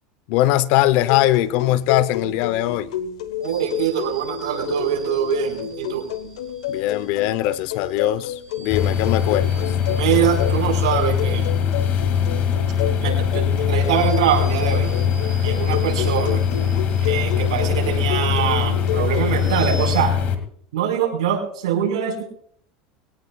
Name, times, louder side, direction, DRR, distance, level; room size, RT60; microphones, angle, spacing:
voice 1, 0.3-2.9 6.7-9.8, left 14 dB, 60° left, 0.8 m, -21 dB
sound 1, 1.0-19.9, left 10 dB, 85° left, 1.2 m, -30 dB
sound 2, 3.4-20.0, right 1 dB, 15° right, 5.0 m, -44 dB
voice 2, 3.4-6.0 9.9-11.5 13.0-14.9 15.4-16.4 17.0-20.1 20.7-22.2, right 9 dB, 85° right, 4.8 m, -23 dB
sound 3, 8.7-20.3, left 8 dB, 45° left, 2.3 m, -22 dB
22.5 x 17.5 x 2.4 m
supercardioid pair, 120°, 3 cm